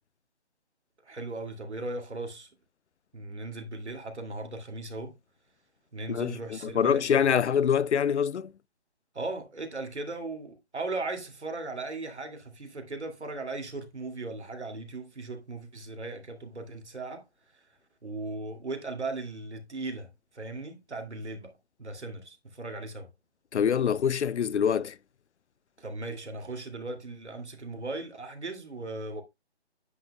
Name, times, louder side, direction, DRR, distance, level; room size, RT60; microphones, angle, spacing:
voice 1, 1.0-2.5 3.1-5.1 5.9-7.4 9.1-17.2 18.0-21.5 21.8-23.1 25.8-29.2, right 2 dB, 80° right, 2.5 m, -37 dB
voice 2, 6.1-8.5 23.5-25.0, left 8 dB, 85° left, 0.6 m, -25 dB
9.9 x 8.1 x 2.2 m
hypercardioid pair, 180°, 33 cm